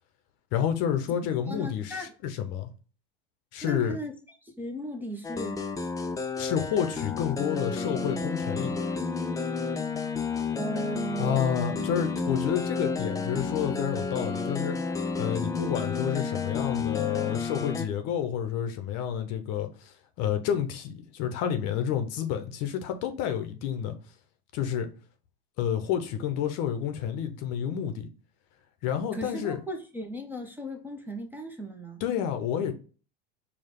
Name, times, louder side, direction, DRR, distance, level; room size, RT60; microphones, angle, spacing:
voice 1, 0.5-2.7 3.5-4.0 6.4-8.7 11.2-14.8 15.2-23.9 24.5-24.9 25.6-28.1 28.8-29.6 32.0-32.7, left 9 dB, 55° left, 0.9 m, -29 dB
voice 2, 1.5-2.1 3.6-5.6 10.5-11.8 29.1-32.0, right 1 dB, 5° right, 0.8 m, -37 dB
sound 1, 5.2-17.9, left 4 dB, 10° left, 0.4 m, -31 dB
4.6 x 2.3 x 3.6 m
hypercardioid pair, 95°, 32 cm